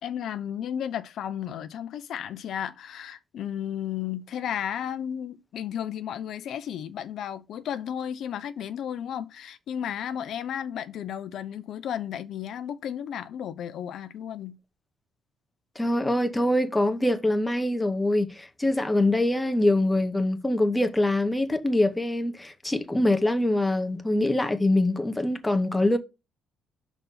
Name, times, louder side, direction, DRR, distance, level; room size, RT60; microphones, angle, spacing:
voice 1, 0.0-14.6, left 9 dB, 65° left, 0.5 m, -33 dB
voice 2, 15.8-26.0, left 1 dB, 10° left, 0.9 m, -24 dB
5.9 x 4.0 x 5.4 m
cardioid pair, 120°, 0 cm